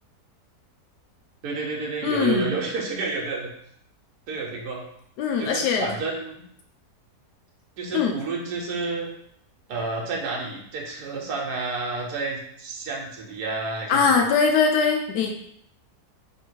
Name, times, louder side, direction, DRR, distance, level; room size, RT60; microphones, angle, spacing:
voice 1, 1.4-3.5 4.3-4.8 5.4-6.4 7.8-9.1 9.7-14.3, right 4 dB, 80° right, -1 dB, 1.3 m, -30 dB
voice 2, 2.0-2.5 5.2-5.9 7.9-8.1 13.9-15.3, left 5 dB, 90° left, 3 dB, 1.2 m, -21 dB
3.2 x 2.8 x 4.4 m, 0.69 s
omnidirectional pair, 1.7 m